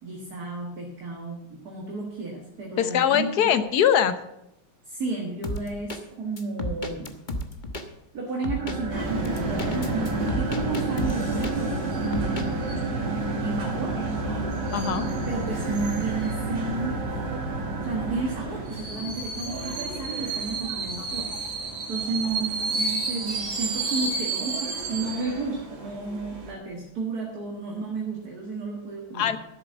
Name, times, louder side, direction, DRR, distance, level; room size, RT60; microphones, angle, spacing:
voice 1, 0.0-3.5 4.8-7.2 8.1-12.8 13.4-14.0 15.2-17.1 17.8-21.4 21.9-29.4, right 3 dB, 50° right, 0 dB, 2.2 m, -32 dB
voice 2, 2.8-4.2 14.7-15.1 29.1-29.4, left 9 dB, 60° left, 12 dB, 1.2 m, -22 dB
sound 1, 5.4-6.0 6.4-7.9 8.4-8.8 9.3-11.8 12.1-12.5, left 1 dB, 30° left, 1.0 m, -32 dB
sound 2, 8.5-19.0, right 2 dB, 25° right, 1.3 m, -31 dB
sound 3, 8.9-26.5, right 3 dB, 75° right, 3.0 m, -32 dB
12.5 x 7.4 x 8.0 m, 0.82 s
omnidirectional pair, 2.2 m